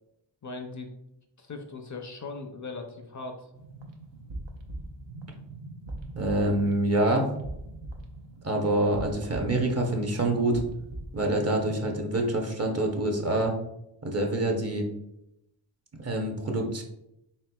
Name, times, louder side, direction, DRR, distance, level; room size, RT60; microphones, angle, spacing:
voice 1, 0.4-0.9 1.4-3.5, left 3 dB, 40° left, 5 dB, 0.5 m, -39 dB
sound 1, 3.5-12.0, right 2 dB, 80° right, 0.7 m, -42 dB
voice 2, 6.2-7.3 8.4-10.6 11.1-13.5 14.0-14.8 16.0-16.8, right 1 dB, 35° right, 1 dB, 0.7 m, -26 dB
4.2 x 4.1 x 2.2 m, 0.83 s
wide cardioid pair, 125°, 44 cm